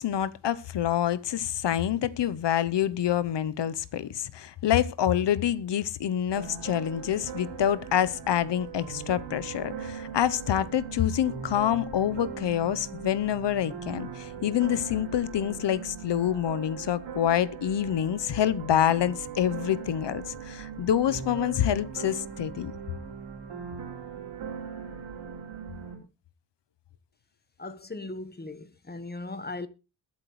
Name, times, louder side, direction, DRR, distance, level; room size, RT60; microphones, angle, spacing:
voice 1, 0.0-22.7, left 10 dB, 65° left, 0.9 m, -27 dB
sound 1, 6.3-25.9, right 6 dB, 85° right, 4.2 m, -40 dB
voice 2, 27.6-29.7, left 2 dB, 20° left, 1.3 m, -38 dB
21.5 x 7.9 x 3.2 m
cardioid pair, 55°, 45 cm